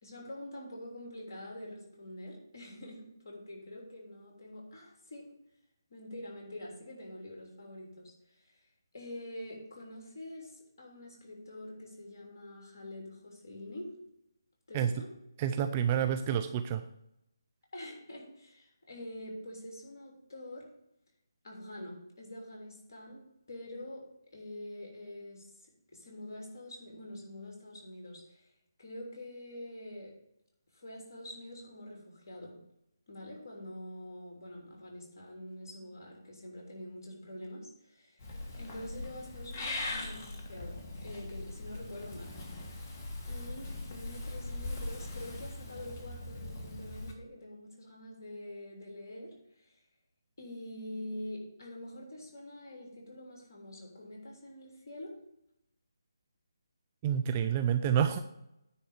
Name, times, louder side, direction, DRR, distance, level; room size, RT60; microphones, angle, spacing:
voice 1, 0.0-5.3 5.9-8.6 8.9-13.9 14.7-15.1 17.7-20.7 21.4-28.5 28.8-30.1 30.7-32.6 33.1-38.3 38.6-42.3 43.3-49.8 50.4-55.2, left 1 dB, 50° left, -1 dB, 3.2 m, -46 dB
voice 2, 15.4-16.8 57.0-58.2, right 9 dB, 20° right, 8 dB, 0.4 m, -28 dB
Purr / Meow, 38.2-47.1, left 2 dB, 30° left, 1.4 m, -41 dB
9.7 x 4.2 x 6.6 m, 0.81 s
figure-of-eight pair, 150°, 2 cm